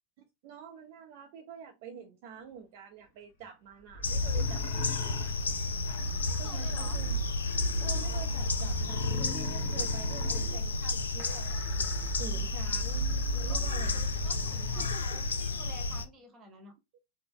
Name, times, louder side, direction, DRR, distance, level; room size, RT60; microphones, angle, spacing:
voice 1, 0.4-5.2 6.4-7.2 7.8-11.6 12.2-13.0 13.3-14.0 14.8-15.2, right 7 dB, 50° right, 0.5 m, -46 dB
sound 1, 3.9-14.9, left 1 dB, 50° left, 0.8 m, -36 dB
sound 2, 4.0-16.1, left 3 dB, 70° left, 0.4 m, -32 dB
voice 2, 6.2-7.0 13.5-16.7, right 3 dB, 20° right, 1.3 m, -50 dB
4.1 x 2.1 x 3.6 m
figure-of-eight pair, 90°, 0 cm